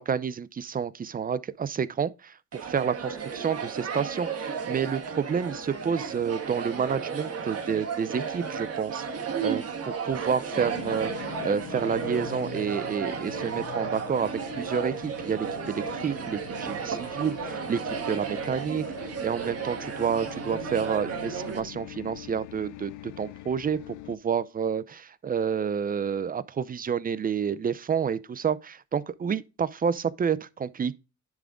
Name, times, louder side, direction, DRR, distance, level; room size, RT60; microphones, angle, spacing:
voice 1, 0.0-9.0 9.4-9.6 10.0-17.8 18.1-18.9 19.2-31.0, right 7 dB, 30° right, 0.5 m, -29 dB
sound 1, 2.5-21.6, right 6 dB, 55° right, 1.5 m, -34 dB
sound 2, 10.5-24.2, left 15 dB, 85° left, 0.5 m, -43 dB
10.5 x 3.7 x 3.7 m
cardioid pair, 90°, 30 cm